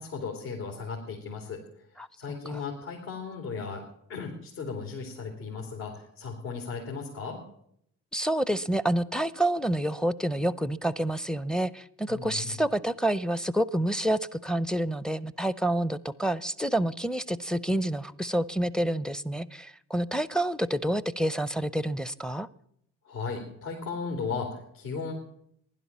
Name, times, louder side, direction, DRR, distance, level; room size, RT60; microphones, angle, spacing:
voice 1, 0.0-1.6 2.2-3.8 4.1-7.4 12.1-12.6 23.0-25.1, left 5 dB, 75° left, 0 dB, 2.9 m, -36 dB
voice 2, 8.1-22.5, right 1 dB, ahead, 20 dB, 0.5 m, -28 dB
16.0 x 11.0 x 7.2 m, 0.72 s
hypercardioid pair, 50°, 49 cm